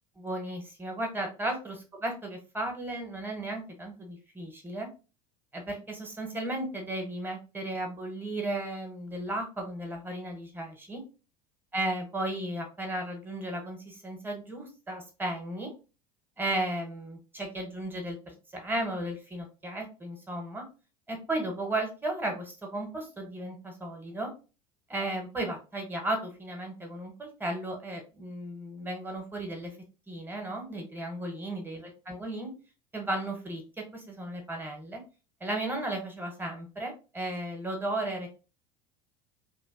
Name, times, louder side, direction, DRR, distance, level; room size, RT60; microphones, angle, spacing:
voice 1, 0.2-4.9 5.5-11.0 11.7-15.7 16.4-20.6 21.1-24.3 24.9-29.7 30.1-32.5 32.9-33.6 33.9-35.0 35.4-38.3, right 1 dB, 10° right, 2 dB, 0.8 m, -35 dB
2.6 x 2.4 x 2.3 m, 0.33 s
figure-of-eight pair, 75°, 20 cm